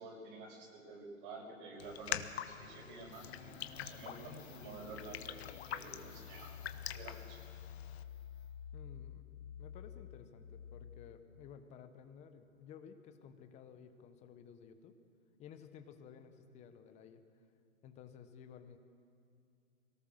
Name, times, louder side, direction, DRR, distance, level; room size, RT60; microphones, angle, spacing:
voice 1, 0.0-7.4, right 3 dB, 40° right, -1 dB, 6.5 m, -50 dB
Raindrop, 1.8-8.0, left 11 dB, 50° left, 1.1 m, -45 dB
sound 1, 3.1-11.6, left 8 dB, 75° left, 2.9 m, -51 dB
voice 2, 8.7-9.3 9.6-15.0 15.4-17.4 17.8-18.8, left 7 dB, 15° left, 9 dB, 0.9 m, -55 dB
23.5 x 18.0 x 6.4 m, 2.4 s
hypercardioid pair, 140°, 42 cm